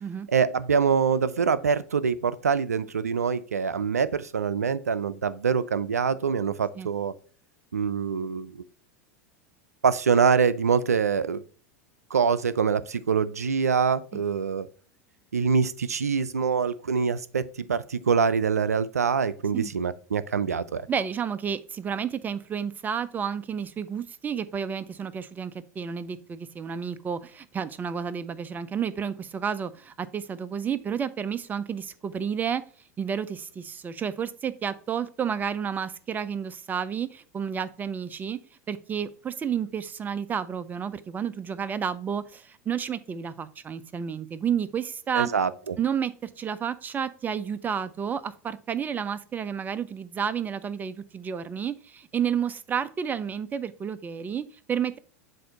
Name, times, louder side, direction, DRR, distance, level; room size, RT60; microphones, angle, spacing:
voice 1, 0.3-7.1 7.7-8.6 9.8-11.4 12.1-14.7 15.3-20.9 45.2-45.8, right 6 dB, 85° right, 0.4 m, -25 dB
voice 2, 20.9-32.6 33.0-38.4 38.7-45.3 45.8-55.0, right 7 dB, 20° right, 0.4 m, -31 dB
7.6 x 2.6 x 5.1 m
hypercardioid pair, 90°, 8 cm